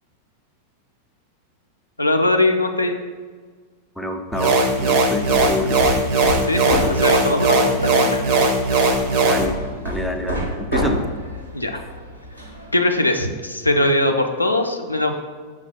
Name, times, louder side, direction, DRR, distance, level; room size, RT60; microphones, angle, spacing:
voice 1, 2.0-3.0 6.5-8.3 11.5-11.8 12.7-15.2, left 1 dB, 85° left, 4 dB, 0.3 m, -21 dB
voice 2, 4.0-5.8 9.2-9.5 9.8-11.0 13.8-14.0, left 1 dB, ahead, 3 dB, 0.4 m, -27 dB
sound 1, 4.3-9.5, right 2 dB, 45° right, 0.5 m, -19 dB
Hammer, 5.0-12.8, equal, 85° right, 0.7 m, -29 dB
5.8 x 2.1 x 4.2 m, 1.5 s
figure-of-eight pair, 90°, 0 cm